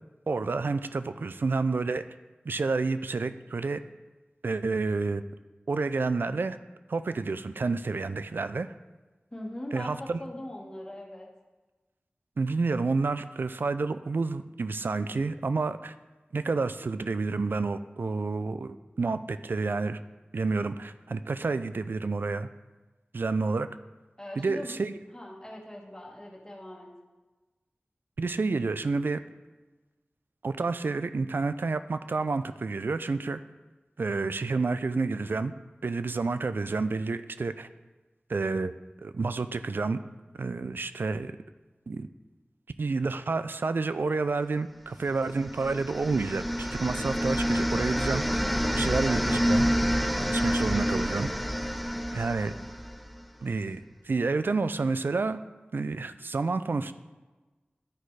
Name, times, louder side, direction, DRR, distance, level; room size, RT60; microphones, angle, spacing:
voice 1, 0.3-2.0 2.5-3.8 4.4-5.2 5.7-6.6 6.9-8.7 9.7-10.2 12.4-15.9 16.3-20.0 20.3-22.5 23.1-23.7 24.4-25.0 28.2-29.2 30.4-33.4 34.0-35.5 35.8-37.7 38.3-38.7 39.0-40.0 40.4-41.3 41.9-42.1 42.8-48.4 48.7-49.7 50.3-51.3 52.1-52.5 53.4-55.4 55.7-56.9, right 3 dB, 75° right, 12 dB, 0.4 m, -29 dB
voice 2, 9.3-11.3 24.2-24.7 25.1-26.9, left 1 dB, 20° left, -2 dB, 1.6 m, -41 dB
sound 1, 45.3-53.3, equal, ahead, 0.3 m, -28 dB
11.5 x 4.3 x 4.7 m, 1.2 s
wide cardioid pair, 65°, 4 cm